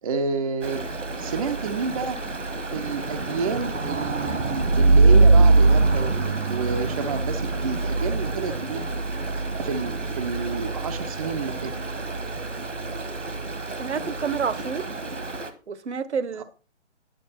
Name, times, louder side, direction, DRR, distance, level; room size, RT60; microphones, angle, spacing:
voice 1, 0.0-0.9 1.1-2.2 2.7-8.8 9.6-11.7 16.4-16.5, right 5 dB, 30° right, 5 dB, 0.6 m, -30 dB
Stream, 0.6-15.5, right 3 dB, 85° right, 1.5 m, -23 dB
voice 2, 13.8-14.9 15.7-16.4, right 6 dB, 65° right, 15 dB, 1.0 m, -28 dB
10.0 x 6.5 x 4.2 m, 0.37 s
figure-of-eight pair, 135°, 36 cm